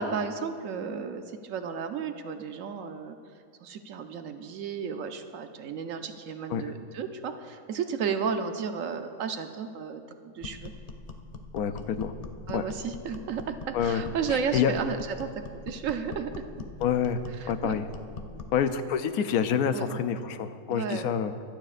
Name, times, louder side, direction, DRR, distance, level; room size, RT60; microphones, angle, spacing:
voice 1, 0.0-3.2 3.6-10.7 12.5-16.4 17.3-17.8 19.7-20.0 20.7-21.1, right 6 dB, 65° right, 7 dB, 1.0 m, -33 dB
sound 1, 10.4-18.6, left 3 dB, 65° left, 0.3 m, -42 dB
voice 2, 11.5-12.1 12.5-12.6 13.7-14.0 14.3-14.7 16.8-17.2 17.5-17.9 18.5-21.3, left 8 dB, 90° left, 10 dB, 1.1 m, -27 dB
25.0 x 9.1 x 2.5 m, 2.4 s
omnidirectional pair, 1.5 m